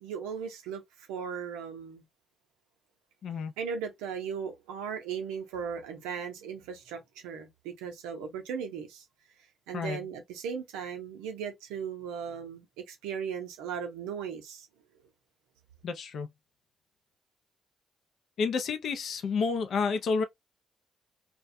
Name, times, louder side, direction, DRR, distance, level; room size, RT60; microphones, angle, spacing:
voice 1, 0.0-2.0 3.6-9.1 9.7-14.7, right 7 dB, 80° right, 0.6 m, -37 dB
voice 2, 3.2-3.5 9.7-10.0 15.8-16.3 18.4-20.2, left 5 dB, 65° left, 0.4 m, -30 dB
2.3 x 2.1 x 2.6 m
hypercardioid pair, 40°, 0 cm